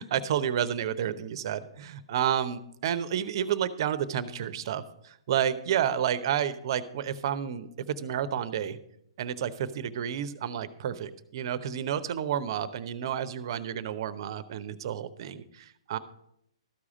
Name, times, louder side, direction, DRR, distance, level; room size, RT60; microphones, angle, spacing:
voice 1, 0.0-8.8 9.2-16.0, right 9 dB, 50° right, 14 dB, 0.8 m, -30 dB
13.0 x 4.9 x 7.3 m, 0.76 s
hypercardioid pair, 135°, 3 cm